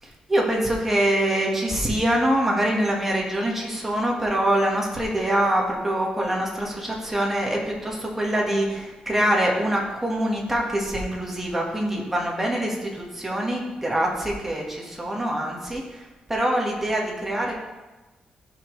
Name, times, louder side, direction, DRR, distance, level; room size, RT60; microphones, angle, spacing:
voice 1, 0.0-17.5, right 1 dB, 10° right, -2 dB, 1.7 m, -24 dB
13.5 x 5.2 x 3.3 m, 1.2 s
wide cardioid pair, 145°, 3 cm